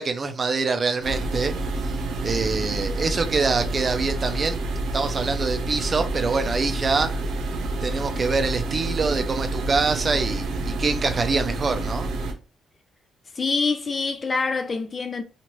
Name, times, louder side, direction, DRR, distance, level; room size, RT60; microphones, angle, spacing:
voice 1, 0.0-1.9 2.2-4.6 4.9-7.2 7.8-12.1, right 4 dB, 35° right, 0.5 m, -25 dB
sound 1, 1.0-12.3, right 2 dB, 80° right, 0.7 m, -28 dB
voice 2, 13.4-15.2, left 4 dB, 35° left, 0.4 m, -25 dB
2.9 x 2.5 x 3.0 m
cardioid pair, 90°, 0 cm